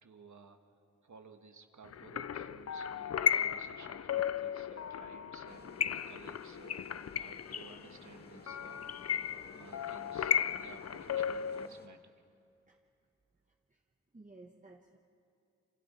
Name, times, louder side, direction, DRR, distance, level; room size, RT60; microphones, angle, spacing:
voice 1, 0.0-0.6 1.0-9.1 9.5-12.1, right 5 dB, 80° right, 5 dB, 1.5 m, -56 dB
sound 1, 1.9-11.7, left 8 dB, 60° left, 0.5 m, -35 dB
sound 2, 5.5-11.9, left 2 dB, 35° left, 1.6 m, -56 dB
voice 2, 14.1-15.0, right 2 dB, 25° right, 1 dB, 1.3 m, -55 dB
27.0 x 25.5 x 4.4 m, 2.6 s
wide cardioid pair, 70°, 29 cm